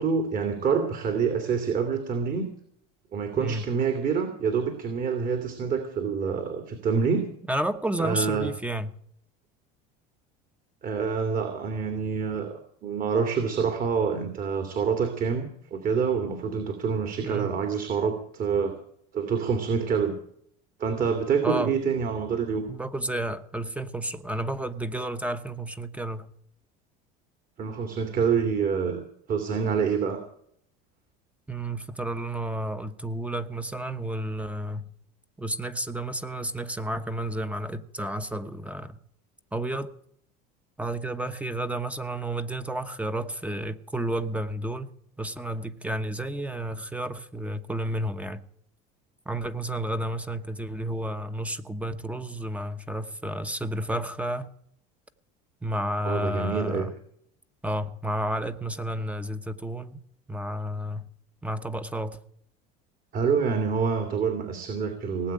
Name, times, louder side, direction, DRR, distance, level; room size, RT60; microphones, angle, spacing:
voice 1, 0.0-2.5 3.1-7.3 8.0-8.5 10.8-18.8 19.1-20.2 20.8-22.7 27.6-30.2 56.0-56.9 63.1-65.3, right 6 dB, 40° right, 5 dB, 2.6 m, -27 dB
voice 2, 3.4-3.7 7.5-8.9 17.2-17.5 21.4-21.8 22.7-26.3 31.5-34.9 35.4-39.0 39.5-39.9 40.8-48.4 49.3-54.5 55.6-56.9 57.6-60.0 60.3-61.1 61.4-62.2, right 1 dB, 5° right, 10 dB, 1.0 m, -31 dB
18.5 x 8.0 x 8.8 m, 0.65 s
supercardioid pair, 115°, 21 cm